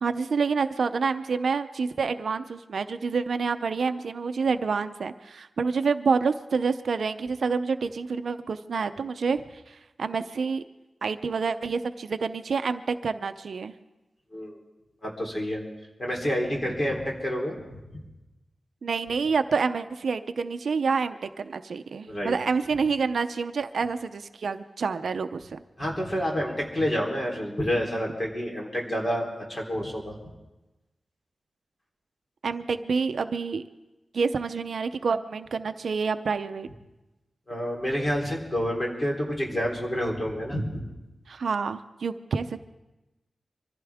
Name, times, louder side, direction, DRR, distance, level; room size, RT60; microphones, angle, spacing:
voice 1, 0.0-9.4 9.7-10.6 11.0-13.7 18.8-25.6 32.4-33.6 34.1-36.7 41.3-42.6, right 5 dB, 70° right, 10 dB, 0.6 m, -28 dB
voice 2, 15.0-15.6 16.0-18.0 22.1-22.4 25.8-30.2 37.5-40.8, equal, 30° left, -1 dB, 3.5 m, -29 dB
24.5 x 15.0 x 3.5 m, 1.0 s
wide cardioid pair, 140°, 0 cm